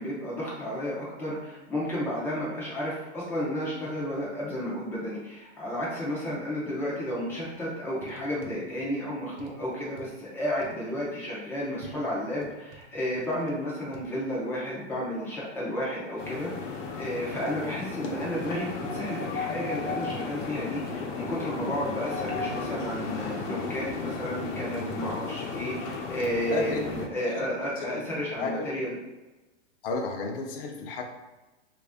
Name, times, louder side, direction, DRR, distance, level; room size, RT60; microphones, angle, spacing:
voice 1, 0.0-28.9, equal, 5° left, -6 dB, 0.5 m, -32 dB
sound 1, 7.1-7.6 8.0-8.9 9.4-10.1 10.6-10.8 11.8-13.5 13.9-14.1, right 4 dB, 50° right, 0.7 m, -51 dB
sound 2, 16.2-27.1, left 4 dB, 80° left, 0.9 m, -34 dB
voice 2, 26.5-26.9 27.2-27.5 27.8-28.0 28.4-28.7 29.8-31.0, left 3 dB, 50° left, 2 dB, 0.7 m, -32 dB
3.1 x 2.6 x 3.4 m, 1.1 s
supercardioid pair, 160°, 36 cm